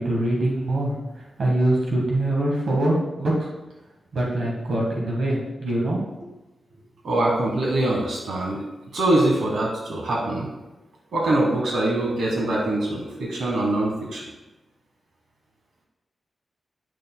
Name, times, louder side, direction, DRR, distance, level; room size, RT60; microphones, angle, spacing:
voice 1, 0.0-3.5 4.1-6.3, right 1 dB, 65° right, -3 dB, 1.5 m, -24 dB
voice 2, 7.0-8.6 8.9-10.5 11.1-14.2, right 1 dB, 85° right, -2 dB, 1.4 m, -23 dB
8.9 x 6.5 x 2.2 m, 1.0 s
wide cardioid pair, 170°, 0 cm